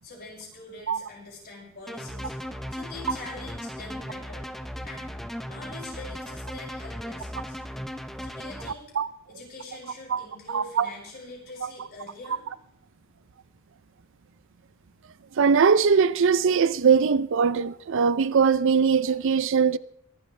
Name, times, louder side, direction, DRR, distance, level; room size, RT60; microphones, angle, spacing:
voice 1, 0.0-2.3 2.7-4.5 4.8-5.2 5.5-7.6 8.2-8.9 9.3-12.5, left 3 dB, 45° left, 5.8 m, -44 dB
sound 1, 1.9-8.7, equal, ahead, 0.7 m, -37 dB
voice 2, 10.1-10.9 11.6-11.7 15.4-19.8, right 6 dB, 60° right, 0.5 m, -21 dB
24.0 x 12.0 x 3.3 m
head